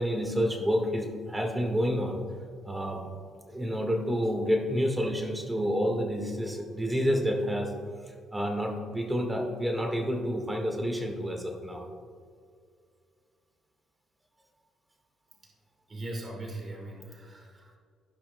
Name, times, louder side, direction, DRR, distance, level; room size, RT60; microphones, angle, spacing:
voice 1, 0.0-2.2 2.6-3.0 3.5-7.7 8.1-11.8, equal, 10° right, 2 dB, 1.6 m, -29 dB
voice 2, 15.9-17.8, right 1 dB, 30° right, -1 dB, 1.7 m, -40 dB
15.5 x 5.7 x 2.2 m, 2.1 s
cardioid pair, 90°, 0 cm